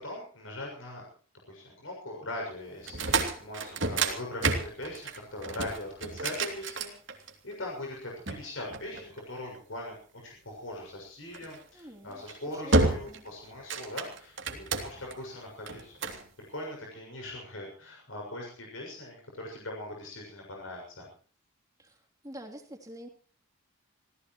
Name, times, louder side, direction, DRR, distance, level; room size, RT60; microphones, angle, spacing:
voice 1, 0.0-1.0 1.5-16.2 16.5-21.1, left 1 dB, 65° left, -1 dB, 6.8 m, -41 dB
sound 1, 2.8-7.5 8.3-9.6 11.3-11.6 12.1-12.4 12.7-13.3 13.5-15.1 15.7-16.2, right 3 dB, 55° right, 3.0 m, -30 dB
voice 2, 11.7-12.2 12.5-13.2 21.8-22.0 22.2-23.1, equal, 15° right, 1 dB, 3.3 m, -45 dB
27.0 x 17.0 x 3.2 m, 0.43 s
head